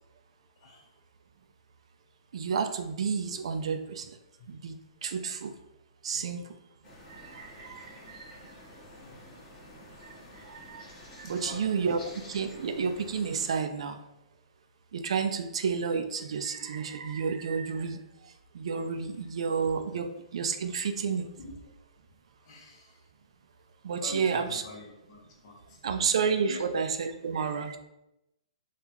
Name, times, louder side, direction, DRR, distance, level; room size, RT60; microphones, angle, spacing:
voice 1, 0.6-0.9 4.4-4.5 6.1-6.4 8.7-10.0 10.5-10.8 11.2-11.9 19.9-20.0 21.4-21.5 22.4-23.0 24.0-25.8 26.5-26.7, left 2 dB, 50° left, -1 dB, 1.0 m, -47 dB
voice 2, 2.3-4.0 4.5-4.8 5.0-5.5 6.0-6.4 7.3-7.9 10.5-10.8 11.2-12.0 12.3-14.0 14.9-18.0 18.5-21.3 23.8-24.6 25.8-27.8, right 6 dB, 70° right, 9 dB, 0.4 m, -30 dB
sound 1, 6.8-13.5, left 1 dB, 25° left, 1.2 m, -50 dB
3.6 x 2.4 x 2.9 m, 0.88 s
hypercardioid pair, 135°, 3 cm